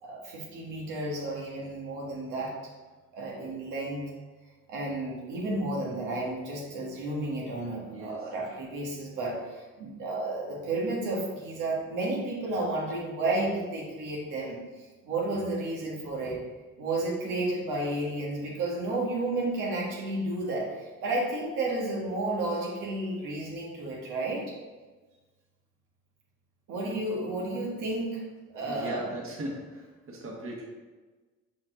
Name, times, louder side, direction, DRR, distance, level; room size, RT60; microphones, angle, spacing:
voice 1, 0.0-2.5 3.1-4.1 4.7-14.6 15.0-16.4 16.8-24.4 26.7-28.2 28.5-29.1, right 2 dB, 85° right, -4 dB, 1.5 m, -32 dB
voice 2, 7.9-8.3 16.0-16.4 27.6-27.7 28.7-30.6, right 1 dB, 45° right, -2 dB, 1.6 m, -39 dB
5.5 x 4.6 x 3.8 m, 1.3 s
cardioid pair, 90°, 30 cm